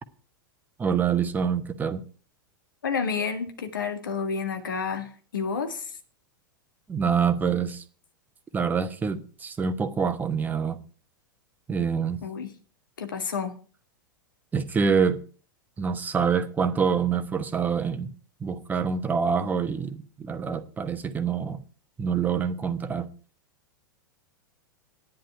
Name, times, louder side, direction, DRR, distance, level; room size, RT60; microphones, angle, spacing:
voice 1, 0.8-2.0 6.9-7.8 8.5-10.8 11.7-12.2 14.5-15.2 15.8-18.1 18.4-21.6 22.0-23.1, right 6 dB, 15° right, 1.1 m, -26 dB
voice 2, 2.8-6.0 12.2-12.5 13.0-13.6, left 5 dB, 65° left, 1.8 m, -30 dB
10.5 x 10.5 x 4.6 m
figure-of-eight pair, 95°, 11 cm